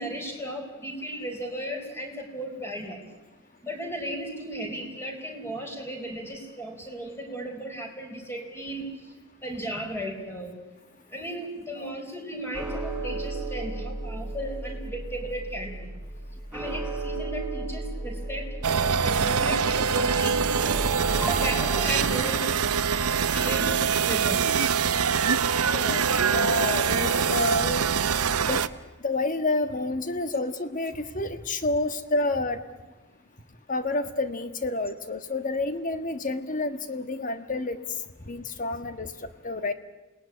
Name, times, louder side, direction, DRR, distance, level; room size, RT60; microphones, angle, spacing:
voice 1, 0.0-3.0 3.6-8.9 9.4-10.5 11.1-15.9 16.5-20.4 21.2-22.5 23.3-24.5, right 1 dB, 10° left, 3 dB, 4.6 m, -35 dB
sound 1, 12.5-22.1, right 2 dB, 5° right, 5.6 m, -34 dB
sound 2, 18.6-28.7, right 6 dB, 90° right, 0.9 m, -24 dB
voice 2, 25.7-26.0 26.3-27.8 28.5-28.6 29.0-32.6 33.7-37.8 38.3-39.1 39.4-39.7, left 2 dB, 35° left, 9 dB, 1.5 m, -29 dB
28.0 x 19.5 x 9.7 m, 1.2 s
head